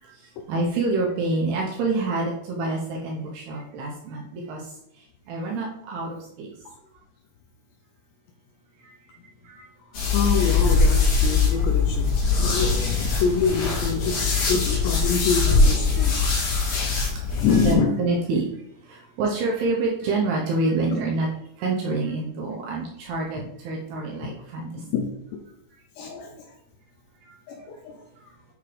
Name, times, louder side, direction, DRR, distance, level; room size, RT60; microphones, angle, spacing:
voice 1, 0.0-4.7 5.3-6.5 8.8-8.9 9.4-9.6 11.5-11.6 14.4-14.5 16.0-16.1 16.7-16.8 17.2-17.4 17.7-18.5 18.8-21.3 21.6-24.8 27.2-27.4, right 3 dB, 75° right, -2 dB, 2.5 m, -27 dB
sound 1, 9.9-17.7, left 4 dB, 50° left, 2.7 m, -22 dB
voice 2, 10.1-16.3 17.4-18.0 24.2-24.3 24.8-25.1 26.0-26.5 27.5-28.0, left 5 dB, 80° left, 3 dB, 2.6 m, -26 dB
8.5 x 3.6 x 4.9 m, 0.76 s
omnidirectional pair, 5.6 m